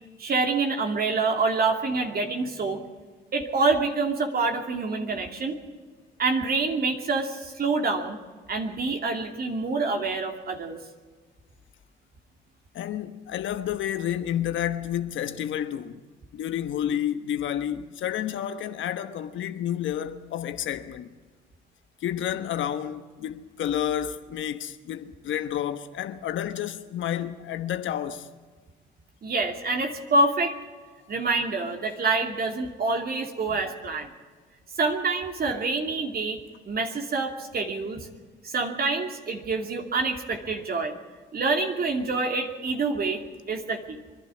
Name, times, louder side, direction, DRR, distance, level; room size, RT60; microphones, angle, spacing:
voice 1, 0.2-2.8 3.3-5.6 6.2-8.2 8.5-10.8 29.2-30.6 31.1-34.1 34.8-38.1 38.4-40.9 41.3-43.2 43.5-44.0, right 3 dB, 45° right, 2.7 m, -26 dB
voice 2, 12.7-16.0 16.3-21.1 22.0-28.3 33.5-33.6, left 10 dB, 65° left, 1.3 m, -30 dB
24.0 x 11.5 x 9.6 m
supercardioid pair, 70°, 21 cm